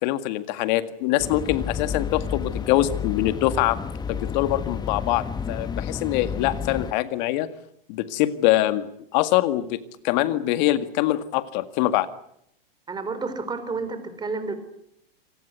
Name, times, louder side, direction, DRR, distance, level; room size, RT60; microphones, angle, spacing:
voice 1, 0.0-3.8 4.1-7.5 7.9-8.9 9.1-12.1, left 15 dB, 50° left, 11 dB, 1.9 m, -24 dB
sound 1, 1.2-6.9, left 6 dB, 15° left, 1.1 m, -31 dB
voice 2, 12.9-14.5, right 4 dB, 15° right, 10 dB, 4.3 m, -30 dB
26.5 x 19.0 x 9.4 m, 0.76 s
hypercardioid pair, 120°, 30 cm